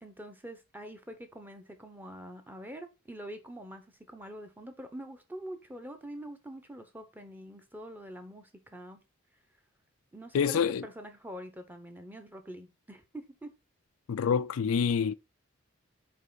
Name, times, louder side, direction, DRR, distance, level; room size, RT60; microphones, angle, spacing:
voice 1, 0.0-9.0 10.1-13.5, equal, 10° right, 0.8 m, -45 dB
voice 2, 10.3-10.8 14.1-15.1, left 6 dB, 75° left, 0.4 m, -27 dB
5.5 x 4.6 x 4.0 m
head